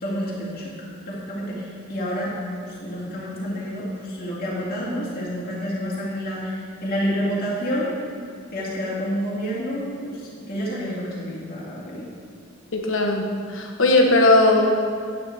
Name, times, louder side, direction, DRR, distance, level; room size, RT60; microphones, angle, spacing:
voice 1, 0.0-0.8 1.1-2.3 2.6-7.9 8.5-12.1, equal, 50° left, -7 dB, 2.1 m, -29 dB
voice 2, 12.7-14.7, left 2 dB, 70° left, 2 dB, 1.1 m, -18 dB
9.4 x 9.3 x 3.4 m, 2.3 s
head